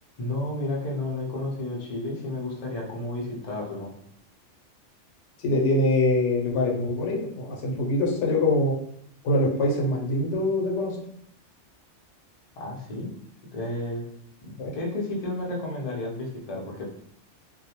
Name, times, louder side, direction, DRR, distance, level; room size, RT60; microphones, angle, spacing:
voice 1, 0.2-3.9 12.6-13.1 13.5-14.0 14.4-16.9, left 2 dB, 45° left, -2 dB, 0.5 m, -32 dB
voice 2, 5.4-8.8 9.2-11.0 14.6-14.8, left 1 dB, 80° left, -1 dB, 0.9 m, -24 dB
2.2 x 2.1 x 2.8 m, 0.68 s
omnidirectional pair, 1.2 m